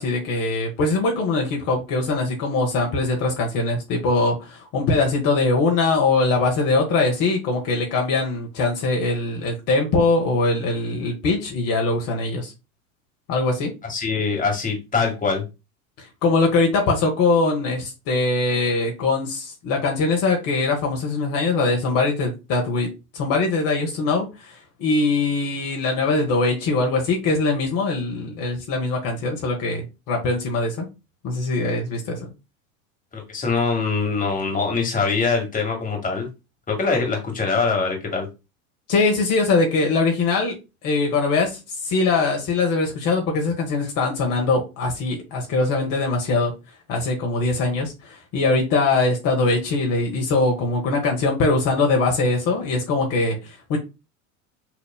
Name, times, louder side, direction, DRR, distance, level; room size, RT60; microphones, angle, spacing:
voice 1, 0.0-12.5 13.3-13.7 16.0-22.9 23.1-30.9 31.2-32.3 38.9-40.5 40.8-46.5 46.9-53.8, left 3 dB, 50° left, 1.5 m, -22 dB
voice 2, 13.8-15.4 33.1-36.3 36.7-38.3, left 4 dB, 20° left, 1.7 m, -23 dB
6.0 x 2.9 x 2.2 m
hypercardioid pair, 80°, 43 cm